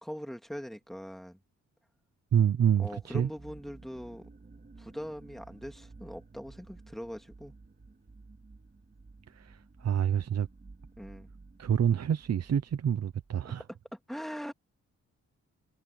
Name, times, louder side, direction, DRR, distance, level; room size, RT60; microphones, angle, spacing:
voice 1, 0.0-1.4 2.8-4.3 4.8-7.5 11.0-11.3 13.7-14.5, equal, ahead, 2.5 m, -41 dB
voice 2, 2.3-3.3 9.4-10.5 11.6-13.6, right 9 dB, 60° right, 0.9 m, -27 dB
sound 1, 2.8-13.3, right 3 dB, 30° right, 3.4 m, -53 dB
cardioid pair, 95°, 29 cm